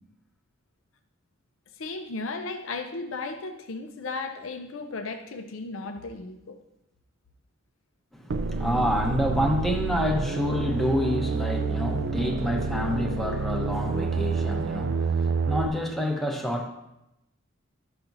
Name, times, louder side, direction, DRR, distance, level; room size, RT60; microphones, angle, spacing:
voice 1, 1.8-6.6, left 3 dB, 80° left, 0.6 m, -35 dB
voice 2, 8.1-16.7, equal, ahead, 0.8 m, -28 dB
sound 1, 8.3-15.7, right 4 dB, 55° right, 0.4 m, -28 dB
13.0 x 5.9 x 2.6 m
head